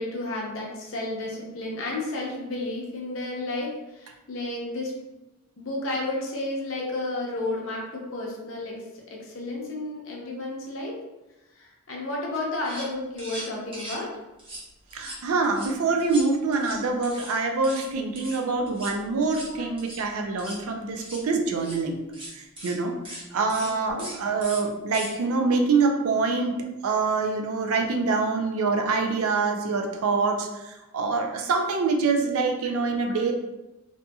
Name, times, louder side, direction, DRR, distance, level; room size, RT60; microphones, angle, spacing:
voice 1, 0.0-4.9 5.6-10.9 11.5-14.1 19.4-19.7 23.8-24.1 32.6-33.2, left 2 dB, 65° left, -2 dB, 0.7 m, -32 dB
sound 1, 12.3-12.4 12.6-12.9 13.2-14.0 14.4-14.6 14.9-15.7 16.0-17.3 17.6-17.9 18.1-18.4 18.7-18.9 19.2-19.5 19.8-20.0 20.3-20.6 21.0-21.2 21.5-21.8 22.1-22.3 22.6-22.7 23.0-23.2 23.5-23.7 24.0-24.2 24.4-24.6 24.9-25.1, equal, 25° right, 0.8 m, -39 dB
voice 2, 14.9-22.0 22.3-33.3, right 4 dB, 75° right, 3 dB, 0.4 m, -25 dB
2.7 x 2.7 x 2.3 m, 1.0 s
head